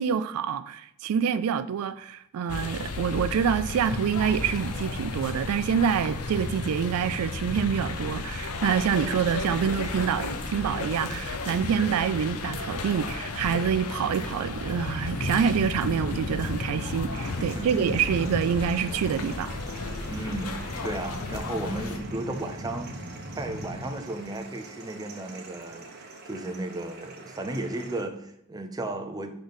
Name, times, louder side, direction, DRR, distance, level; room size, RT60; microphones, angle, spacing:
voice 1, 0.0-19.5, right 7 dB, 80° right, 0.3 m, -26 dB
sound 1, 2.5-22.0, left 3 dB, 85° left, 0.7 m, -33 dB
sound 2, 17.1-28.0, right 1 dB, 45° right, 1.0 m, -42 dB
voice 2, 17.4-17.8 20.1-22.9 23.4-25.9 26.2-29.3, right 2 dB, 15° right, 0.6 m, -34 dB
6.1 x 3.8 x 5.1 m
head